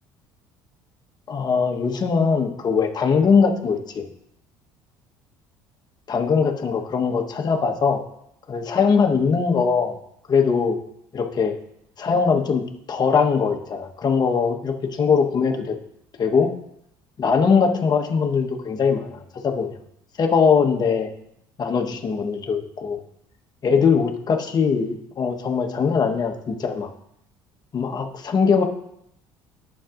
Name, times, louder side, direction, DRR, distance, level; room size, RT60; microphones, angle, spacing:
voice 1, 1.3-4.1 6.1-8.0 8.5-10.0 10.3-10.8 11.1-11.5 12.0-15.8 16.2-16.5 17.2-19.7 20.2-21.1 21.6-23.0 23.6-26.9 27.7-28.6, left 5 dB, 40° left, 3 dB, 1.2 m, -21 dB
11.5 x 7.3 x 2.6 m, 0.77 s
supercardioid pair, 75°, 10 cm